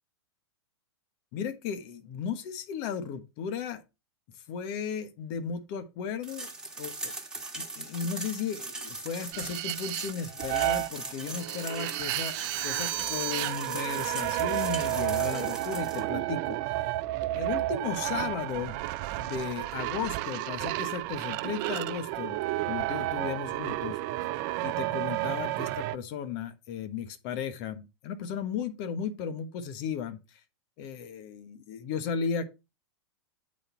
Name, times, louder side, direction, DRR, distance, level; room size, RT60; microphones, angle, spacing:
voice 1, 1.3-3.8 4.5-6.5 6.8-7.1 7.5-16.9 17.3-18.8 19.2-24.0 24.6-30.2 30.8-32.5, left 7 dB, 45° left, 1.2 m, -35 dB
sound 1, 6.2-16.0, right 2 dB, 5° right, 1.7 m, -40 dB
sound 2, 9.3-26.0, right 17 dB, 45° right, 0.5 m, -31 dB
8.6 x 4.3 x 4.4 m
hypercardioid pair, 115°, 15 cm